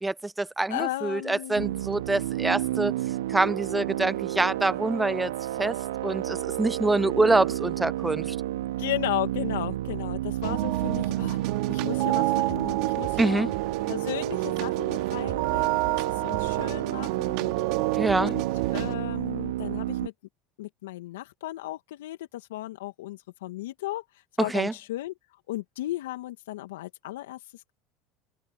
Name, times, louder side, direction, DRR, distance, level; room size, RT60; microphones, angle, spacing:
voice 1, 0.0-2.9 3.3-5.3 5.6-5.8 6.0-8.4 13.2-13.5 18.0-18.3 24.4-24.7, right 2 dB, 10° right, 0.6 m, -25 dB
voice 2, 0.7-1.7 8.8-11.4 11.7-13.5 13.9-17.9 18.2-18.4 18.7-20.1 20.6-25.1 25.5-27.7, left 16 dB, 75° left, 1.9 m, -35 dB
sound 1, 1.6-20.1, right 14 dB, 80° right, 0.5 m, -30 dB
sound 2, 10.4-19.0, right 22 dB, 65° right, 2.4 m, -30 dB
hypercardioid pair, 80°, 0 cm